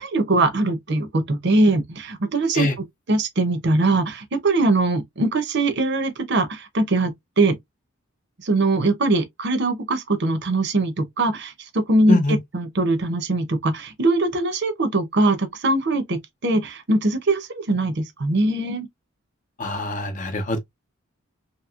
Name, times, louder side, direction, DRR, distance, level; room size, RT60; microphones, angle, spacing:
voice 1, 0.0-2.7 3.1-7.6 8.4-12.2 12.5-18.9, right 2 dB, 55° right, 0.7 m, -21 dB
voice 2, 19.6-20.6, left 2 dB, 35° left, 0.7 m, -23 dB
2.9 x 2.8 x 2.4 m
head